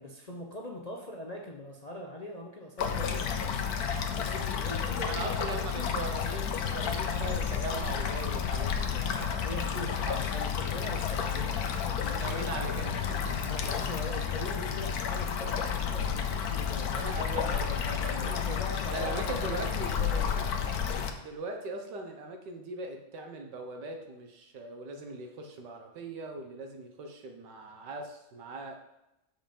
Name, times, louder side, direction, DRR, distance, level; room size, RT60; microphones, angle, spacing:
voice 1, 0.0-3.6 4.2-6.1 9.4-12.4 13.5-17.1 18.1-20.5, left 1 dB, 40° left, 0 dB, 0.6 m, -41 dB
sound 1, 2.8-21.1, left 7 dB, 70° left, 1.3 m, -31 dB
voice 2, 5.1-9.5 10.1-10.2 12.1-13.5 16.9-18.6 18.9-20.2 21.2-28.8, right 2 dB, 90° right, 3 dB, 1.8 m, -40 dB
7.6 x 5.0 x 5.3 m, 0.90 s
omnidirectional pair, 1.8 m